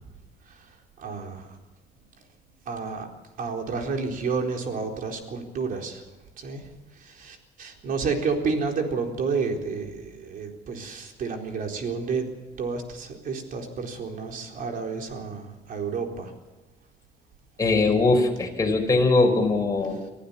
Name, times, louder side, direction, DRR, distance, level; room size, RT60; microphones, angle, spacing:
voice 1, 0.4-1.6 2.6-3.1 3.4-6.1 6.4-16.3 19.9-20.0, right 5 dB, 55° right, 2 dB, 4.2 m, -31 dB
voice 2, 17.6-20.0, left 3 dB, 20° left, 2 dB, 5.3 m, -21 dB
24.5 x 15.0 x 7.1 m, 1.2 s
cardioid pair, 110°, 17 cm